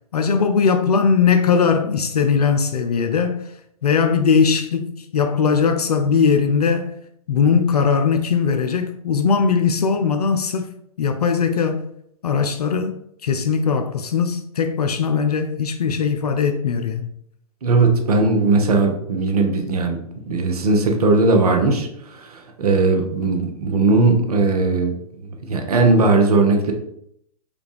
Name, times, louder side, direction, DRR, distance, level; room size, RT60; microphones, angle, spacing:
voice 1, 0.1-3.5 3.8-6.9 7.3-10.7 11.0-11.8 12.2-17.1, left 6 dB, 80° left, 0.5 m, -19 dB
voice 2, 17.6-20.0 20.2-24.9 25.5-26.7, right 3 dB, 75° right, 0.9 m, -18 dB
4.9 x 2.3 x 3.3 m
hypercardioid pair, 115°, 20 cm